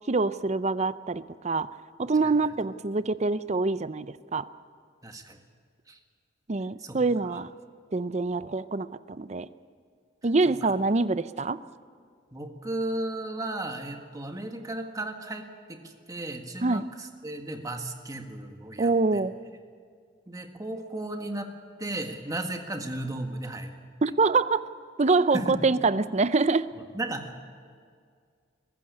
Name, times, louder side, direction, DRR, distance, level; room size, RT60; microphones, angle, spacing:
voice 1, 0.1-1.7 2.0-4.5 6.5-7.5 7.9-9.5 10.2-11.6 16.6-16.8 18.8-19.3 24.0-24.6 25.0-26.7, right 3 dB, 35° right, 15 dB, 0.6 m, -25 dB
voice 2, 5.0-5.4 5.9-6.0 6.8-7.0 7.2-7.4 10.6-10.7 12.3-15.4 15.7-15.8 16.1-19.2 20.3-21.5 21.8-23.7 25.3-25.6 26.9-27.4, right 1 dB, 20° right, 5 dB, 1.7 m, -35 dB
22.0 x 14.5 x 9.8 m, 2.1 s
head